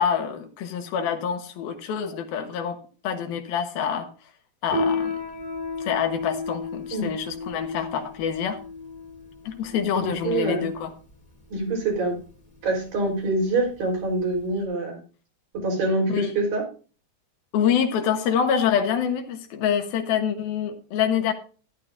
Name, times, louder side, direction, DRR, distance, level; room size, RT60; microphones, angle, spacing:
voice 1, 0.0-2.8 3.0-4.1 4.6-5.1 5.8-8.6 9.5-10.9 16.1-16.4 17.5-21.3, left 8 dB, 75° left, 6 dB, 3.0 m, -26 dB
Piano, 4.7-14.6, left 3 dB, 15° left, 2.2 m, -33 dB
voice 2, 9.9-10.7 11.5-12.2 12.6-15.0 15.6-16.6, right 2 dB, 65° right, 0 dB, 5.6 m, -25 dB
12.5 x 11.5 x 2.6 m, 0.37 s
omnidirectional pair, 4.4 m